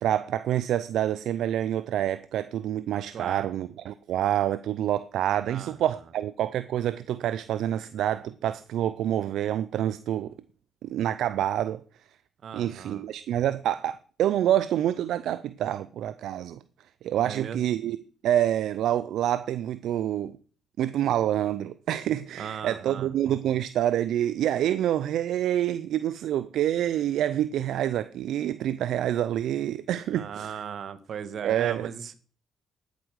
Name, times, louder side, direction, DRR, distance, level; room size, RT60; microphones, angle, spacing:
voice 1, 0.0-10.4 10.8-11.8 12.5-16.6 17.0-18.0 18.2-20.4 20.8-30.6 31.4-31.9, right 11 dB, 80° right, 0.5 m, -27 dB
voice 2, 3.1-3.5 5.5-5.8 12.4-13.0 17.2-17.6 22.3-23.1 30.1-32.1, right 7 dB, 60° right, 1.4 m, -37 dB
11.5 x 8.3 x 6.4 m
cardioid pair, 90°, 0 cm